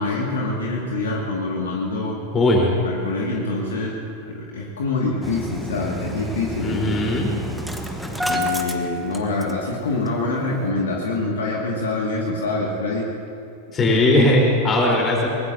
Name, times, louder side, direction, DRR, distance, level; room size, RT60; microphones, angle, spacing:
voice 1, 0.0-2.2 2.8-7.1 8.2-13.1, left 2 dB, 65° left, -2 dB, 2.0 m, -25 dB
voice 2, 2.3-2.7 6.6-7.3 13.7-15.3, left 1 dB, 25° left, -2 dB, 3.8 m, -18 dB
Engine starting, 5.2-9.8 10.1-10.2 10.5-10.6, equal, ahead, 1.2 m, -29 dB
23.0 x 19.5 x 2.7 m, 2.6 s
figure-of-eight pair, 90°, 0 cm